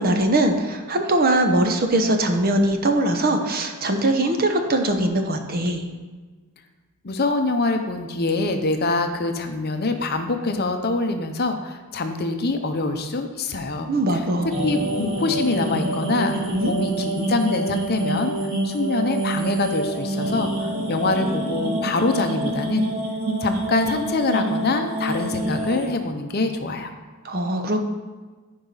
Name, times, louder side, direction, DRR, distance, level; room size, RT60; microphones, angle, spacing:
voice 1, 0.0-5.8 13.9-14.6 16.5-16.7 27.2-27.8, right 1 dB, 40° right, 5 dB, 0.8 m, -21 dB
voice 2, 7.0-18.3 18.6-22.9 23.4-26.9, left 3 dB, 45° left, 6 dB, 0.7 m, -24 dB
sound 1, 14.5-25.9, right 1 dB, 65° right, 2.7 m, -27 dB
14.0 x 4.8 x 4.0 m, 1.4 s
head